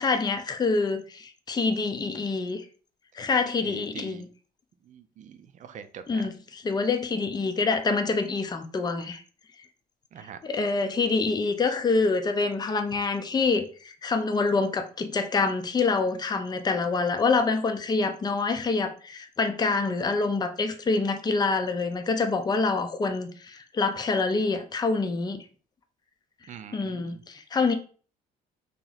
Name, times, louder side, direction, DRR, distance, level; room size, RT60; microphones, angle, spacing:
voice 1, 0.0-2.7 3.1-4.3 6.1-9.2 10.4-25.4 26.7-27.7, left 4 dB, 25° left, 0.6 m, -26 dB
voice 2, 3.6-4.3 4.8-6.3 10.1-10.4 26.5-27.2, right 8 dB, 45° right, 0.5 m, -44 dB
2.9 x 2.9 x 4.0 m
cardioid pair, 110°, 17 cm